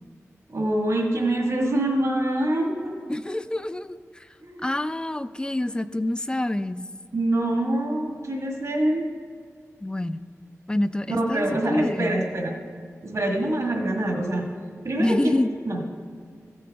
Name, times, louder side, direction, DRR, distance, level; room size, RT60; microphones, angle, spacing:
voice 1, 0.5-3.1 4.4-4.6 7.1-9.1 11.1-12.5 13.0-14.4 14.8-15.4 15.7-15.8, right 1 dB, 65° right, 0 dB, 1.5 m, -25 dB
voice 2, 3.1-4.3 4.6-6.8 9.8-10.2 10.7-12.2 15.0-15.5, left 1 dB, 15° left, 13 dB, 0.4 m, -27 dB
15.0 x 8.6 x 3.4 m, 2.1 s
wide cardioid pair, 85°, 5 cm